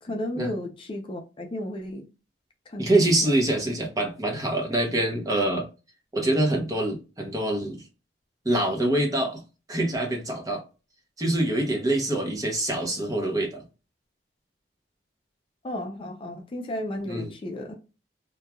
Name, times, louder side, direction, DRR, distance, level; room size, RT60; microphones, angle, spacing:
voice 1, 0.0-2.1 2.7-3.1 15.6-17.8, left 1 dB, 30° left, 0.4 m, -33 dB
voice 2, 2.8-5.7 6.1-7.8 8.4-9.4 9.7-10.6 11.2-13.6 17.1-17.3, right 1 dB, 20° right, 0.7 m, -25 dB
3.0 x 2.2 x 2.2 m
head